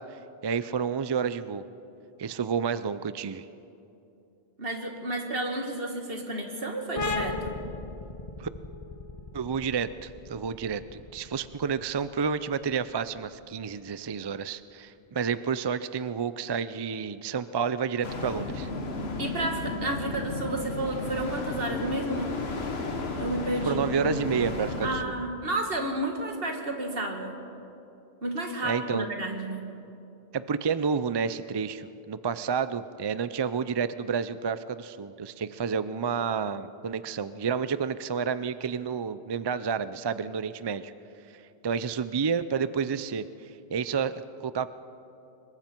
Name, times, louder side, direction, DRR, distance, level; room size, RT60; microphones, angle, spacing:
voice 1, 0.0-1.6 2.2-3.5 8.4-8.5 9.3-18.7 23.6-25.1 28.6-29.1 30.3-40.9 41.3-44.7, right 6 dB, 40° right, 14 dB, 0.3 m, -30 dB
voice 2, 4.6-7.5 19.2-22.4 23.2-23.8 24.8-27.3 28.2-29.6, right 1 dB, 65° right, 2 dB, 2.3 m, -31 dB
sound 1, 7.0-14.3, left 3 dB, 35° left, 1.2 m, -38 dB
sound 2, 18.0-25.0, left 2 dB, 80° left, 1.6 m, -33 dB
25.5 x 22.5 x 4.5 m, 2.8 s
omnidirectional pair, 1.1 m